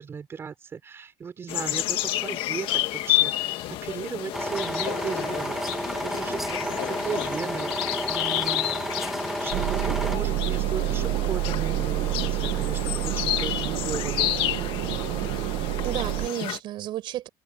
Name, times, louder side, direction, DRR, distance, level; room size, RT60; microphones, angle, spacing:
voice 1, 0.0-14.3, right 6 dB, 25° right, 5.5 m, -36 dB
sound 1, 1.5-16.6, left 15 dB, 55° left, 1.8 m, -30 dB
sound 2, 4.3-10.2, right 1 dB, 5° right, 1.9 m, -31 dB
sound 3, 9.5-16.3, right 17 dB, 70° right, 1.0 m, -28 dB
voice 2, 15.3-17.3, right 14 dB, 50° right, 6.5 m, -33 dB
cardioid pair, 180°, 11 cm